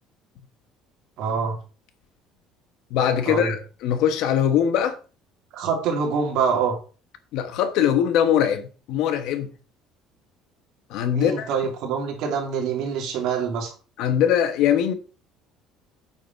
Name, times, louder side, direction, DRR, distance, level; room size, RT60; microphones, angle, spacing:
voice 1, 1.2-1.6 3.2-3.5 5.5-6.8 11.1-13.7, right 6 dB, 55° right, 3.0 m, -25 dB
voice 2, 2.9-5.0 7.3-9.5 10.9-11.5 14.0-14.9, left 9 dB, 55° left, 1.1 m, -21 dB
9.1 x 6.0 x 4.3 m
cardioid pair, 180°, 0 cm